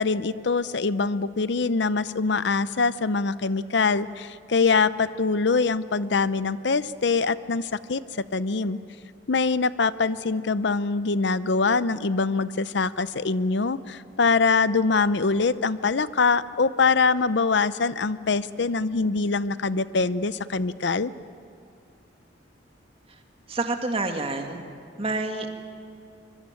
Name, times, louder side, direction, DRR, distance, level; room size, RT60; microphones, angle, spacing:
voice 1, 0.0-8.0 8.3-8.8 9.3-21.1, left 4 dB, 65° left, 15 dB, 0.7 m, -24 dB
voice 2, 23.5-24.6 25.0-25.5, right 2 dB, 30° right, 4 dB, 2.3 m, -28 dB
24.5 x 23.5 x 9.1 m, 2.5 s
head